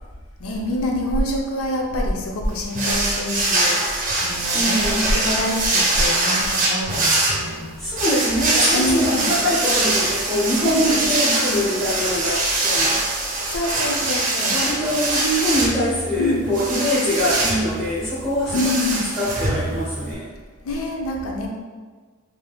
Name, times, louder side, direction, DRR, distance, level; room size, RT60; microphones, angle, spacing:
voice 1, 0.4-7.7 8.7-9.4 10.6-11.1 13.5-14.6 16.2-16.5 18.5-19.0 20.6-21.5, left 1 dB, 80° left, 0 dB, 0.5 m, -25 dB
sound 1, 2.7-20.1, right 2 dB, 40° right, 0.6 m, -23 dB
voice 2, 4.5-5.1 7.8-13.0 14.5-20.3, equal, 5° left, -11 dB, 1.0 m, -23 dB
3.5 x 2.7 x 2.3 m, 1.4 s
head